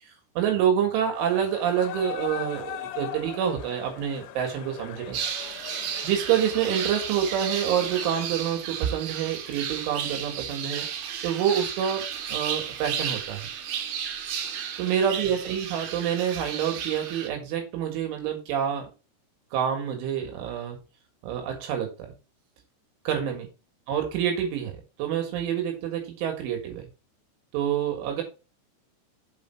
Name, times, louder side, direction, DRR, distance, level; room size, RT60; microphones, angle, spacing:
voice 1, 0.4-5.2 5.6-5.7 6.0-10.9 11.2-13.5 14.8-18.9 19.5-20.8 21.2-22.1 23.1-23.5 23.9-26.9 27.5-28.2, right 9 dB, 75° right, 3 dB, 3.9 m, -27 dB
sound 1, 1.1-8.3, left 12 dB, 80° left, 2.7 m, -40 dB
sound 2, 5.1-17.3, right 8 dB, 90° right, 2.1 m, -33 dB
7.4 x 4.6 x 4.4 m, 0.31 s
omnidirectional pair, 5.8 m